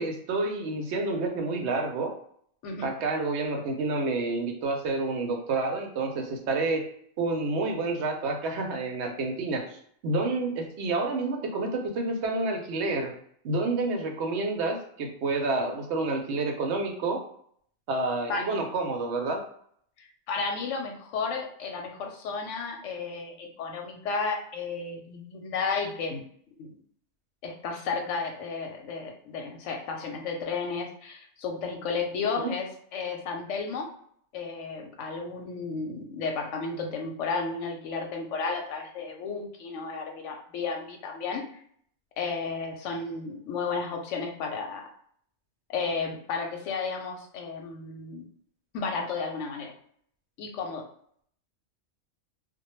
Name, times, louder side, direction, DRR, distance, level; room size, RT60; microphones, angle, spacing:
voice 1, 0.0-2.1 2.8-6.9 7.2-13.1 13.4-17.2 17.9-19.4 32.4-32.5, right 3 dB, 70° right, 3 dB, 0.8 m, -29 dB
voice 2, 20.0-26.2 26.6-26.8 27.4-33.9 34.3-41.4 42.2-44.9 45.7-48.3 48.7-49.7 50.4-50.8, left 4 dB, 90° left, 3 dB, 0.9 m, -33 dB
2.1 x 2.1 x 3.0 m, 0.64 s
omnidirectional pair, 1.2 m